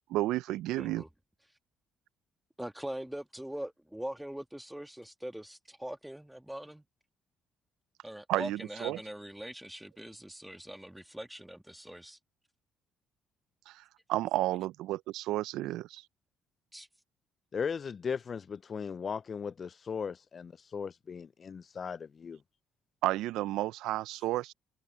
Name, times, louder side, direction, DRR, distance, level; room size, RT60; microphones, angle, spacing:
voice 1, 0.1-1.0 8.3-9.0 13.7-13.8 14.1-16.0 23.0-24.5, right 16 dB, 80° right, 0.4 m, -32 dB
voice 2, 0.8-1.1 2.6-6.8 8.0-12.2 16.7-16.9, right 1 dB, 5° right, 1.4 m, -42 dB
voice 3, 17.5-22.4, left 6 dB, 40° left, 0.3 m, -37 dB
cardioid pair, 85°, 0 cm